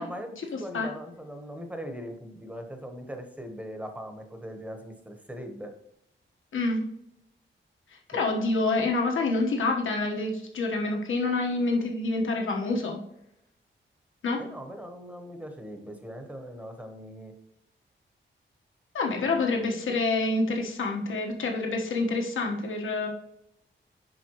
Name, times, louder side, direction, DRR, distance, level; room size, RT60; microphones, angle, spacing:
voice 1, 0.0-5.7 8.1-8.2 14.4-17.3 19.2-19.6, equal, 5° right, 5 dB, 1.1 m, -40 dB
voice 2, 0.5-0.9 6.5-6.8 8.1-13.0 14.2-14.4 18.9-23.1, left 3 dB, 85° left, 1 dB, 1.3 m, -27 dB
7.6 x 5.2 x 3.0 m, 0.80 s
wide cardioid pair, 110°, 20 cm